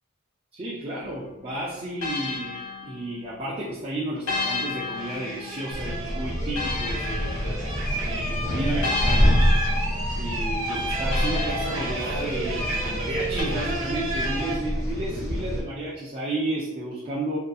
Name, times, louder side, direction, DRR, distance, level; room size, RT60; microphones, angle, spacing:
voice 1, 0.5-7.4 8.0-9.4 10.2-17.4, right 1 dB, 30° right, -6 dB, 0.3 m, -32 dB
sound 1, 1.0-3.5 4.3-8.0 8.8-12.6 13.4-13.5, left 4 dB, 90° left, 0.7 m, -34 dB
sound 2, 4.9-14.6, right 2 dB, 70° right, 0.6 m, -32 dB
sound 3, 5.7-15.6, equal, 35° left, 0.8 m, -27 dB
2.7 x 2.4 x 2.2 m, 0.98 s
head